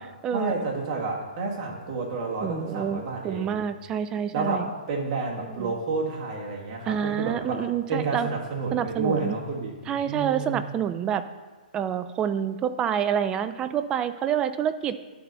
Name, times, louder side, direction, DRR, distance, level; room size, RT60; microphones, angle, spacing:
voice 1, 0.3-3.6 4.3-7.6 7.9-10.6, right 3 dB, 35° right, -2 dB, 1.7 m, -30 dB
voice 2, 2.4-4.7 5.4-5.7 6.8-8.3 8.7-9.3 9.9-11.2 11.7-15.0, right 9 dB, 15° right, 11 dB, 0.3 m, -28 dB
11.5 x 4.1 x 5.5 m, 1.3 s
hypercardioid pair, 150°, 5 cm